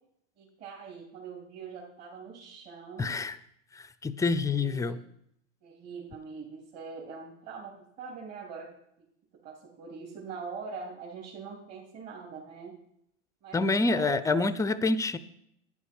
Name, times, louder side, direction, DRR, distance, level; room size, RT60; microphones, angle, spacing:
voice 1, 0.4-3.1 4.6-5.0 5.6-8.7 9.0-9.1 9.4-12.7 13.4-14.5, right 5 dB, 45° right, -4 dB, 3.3 m, -43 dB
voice 2, 3.0-3.4 3.7-5.0 13.5-15.2, left 3 dB, 10° left, 16 dB, 0.5 m, -27 dB
11.0 x 9.7 x 5.5 m, 0.74 s
hypercardioid pair, 100°, 36 cm